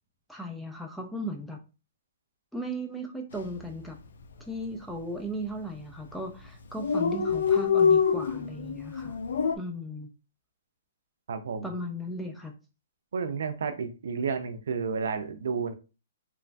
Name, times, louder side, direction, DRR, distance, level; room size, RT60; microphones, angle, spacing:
voice 1, 0.3-1.6 2.5-4.0 4.5-9.2 9.6-10.1 11.6-12.5, equal, ahead, 1 dB, 0.3 m, -36 dB
Dog, 3.3-3.6 3.9-4.0 4.2-4.9 5.5-5.8 6.1-6.2 6.4-6.5 6.6-9.6, left 6 dB, 70° left, 0.4 m, -25 dB
voice 2, 11.3-11.7 13.1-15.7, right 5 dB, 70° right, 9 dB, 0.4 m, -31 dB
3.0 x 2.4 x 2.2 m, 0.31 s
hypercardioid pair, 165°, 0 cm